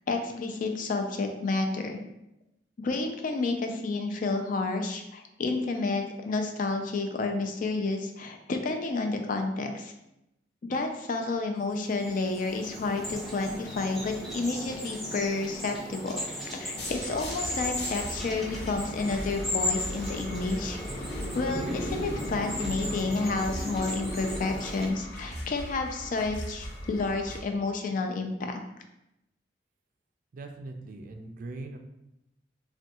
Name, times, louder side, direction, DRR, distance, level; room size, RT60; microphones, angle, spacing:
voice 1, 0.1-2.0 2.8-9.9 10.6-16.2 16.5-20.8 21.3-28.6, left 3 dB, 50° left, 5 dB, 0.4 m, -30 dB
sound 1, 11.7-24.9, left 1 dB, ahead, 0.7 m, -36 dB
sound 2, 16.8-27.4, equal, 70° left, 0.7 m, -39 dB
voice 2, 30.3-31.8, right 2 dB, 50° right, 5 dB, 0.3 m, -40 dB
3.4 x 2.2 x 2.8 m, 0.86 s
head